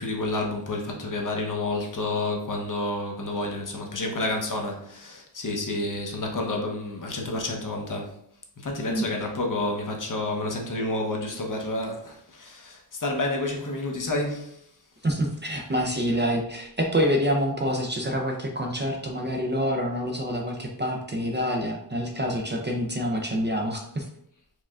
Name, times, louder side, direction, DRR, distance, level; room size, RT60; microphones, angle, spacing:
voice 1, 0.0-8.2 8.6-14.6, left 2 dB, 45° left, 0.9 m, -29 dB
voice 2, 15.0-24.1, equal, 25° right, 0.5 m, -27 dB
4.8 x 3.7 x 2.4 m
wide cardioid pair, 105°, 43 cm